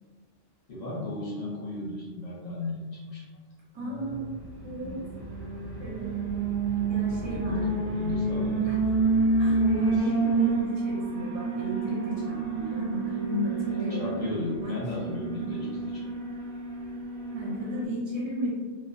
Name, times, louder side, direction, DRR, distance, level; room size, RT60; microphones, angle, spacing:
voice 1, 0.7-3.2 3.7-4.2 7.2-8.7 13.7-16.1, left 2 dB, 45° left, -7 dB, 0.7 m, -35 dB
voice 2, 3.7-4.9 5.8-6.3 6.9-7.8 8.6-8.8 9.4-14.2 14.6-14.7 17.3-18.5, equal, 30° right, -5 dB, 0.6 m, -34 dB
Alarm, 4.4-17.8, right 3 dB, 85° right, 1.0 m, -29 dB
2.2 x 2.2 x 2.5 m, 1.5 s
omnidirectional pair, 1.3 m